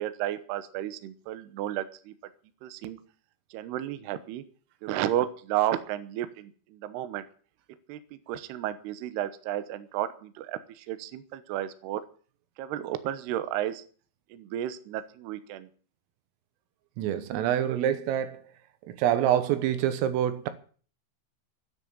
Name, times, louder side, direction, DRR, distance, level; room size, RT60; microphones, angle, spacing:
voice 1, 0.0-2.1 2.6-3.0 3.5-4.4 4.8-7.2 7.9-8.0 8.3-12.0 12.6-13.8 14.3-15.7, right 12 dB, 70° right, 2.6 m, -32 dB
voice 2, 17.0-18.4 18.9-20.5, right 10 dB, 85° right, 3.9 m, -26 dB
12.5 x 9.8 x 8.8 m
omnidirectional pair, 5.7 m